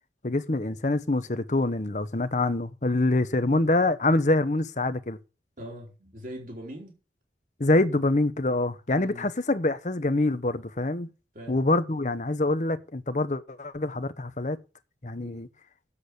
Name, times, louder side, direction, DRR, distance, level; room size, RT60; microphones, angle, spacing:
voice 1, 0.2-5.2 7.6-11.1 11.5-14.6 15.0-15.5, left 2 dB, 45° left, 0.9 m, -25 dB
voice 2, 5.6-7.0 9.0-9.3 11.3-11.6 15.2-15.4, equal, 50° right, 3.5 m, -41 dB
8.4 x 7.4 x 8.2 m
head